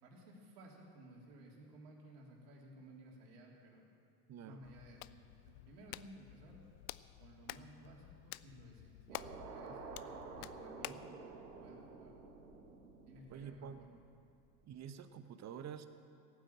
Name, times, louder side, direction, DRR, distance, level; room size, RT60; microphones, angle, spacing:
voice 1, 0.0-3.9 4.4-6.6 7.2-9.8 10.4-12.1 13.1-14.0, right 1 dB, 65° right, -1 dB, 3.5 m, -57 dB
voice 2, 4.3-4.6 13.3-13.8 14.6-15.9, right 8 dB, 35° right, 11 dB, 1.0 m, -48 dB
Hands, 4.6-11.1, left 17 dB, 65° left, 0.5 m, -51 dB
sound 1, 9.1-14.4, right 4 dB, 80° right, 1.9 m, -51 dB
17.0 x 9.1 x 7.6 m, 2.5 s
hypercardioid pair, 80°, 49 cm